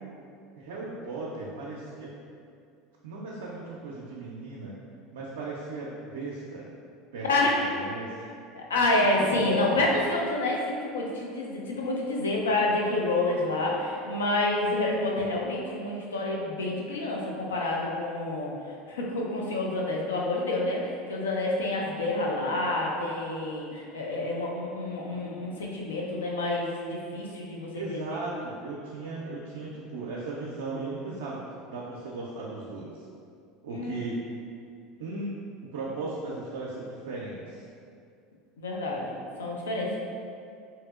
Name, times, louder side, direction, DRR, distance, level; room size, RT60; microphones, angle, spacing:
voice 1, 0.6-2.1 3.0-4.7 5.1-6.7 7.1-8.1 8.9-9.3 27.7-31.4 31.7-33.1 33.6-34.2 35.0-35.3 35.7-37.7 39.7-40.0, right 3 dB, 80° right, -5 dB, 0.3 m, -37 dB
voice 2, 7.3-7.7 8.5-18.5 18.9-28.2 33.7-34.0 38.6-39.9, left 2 dB, 85° left, -2 dB, 0.4 m, -28 dB
2.7 x 2.7 x 2.3 m, 2.4 s
hypercardioid pair, 80°, 0 cm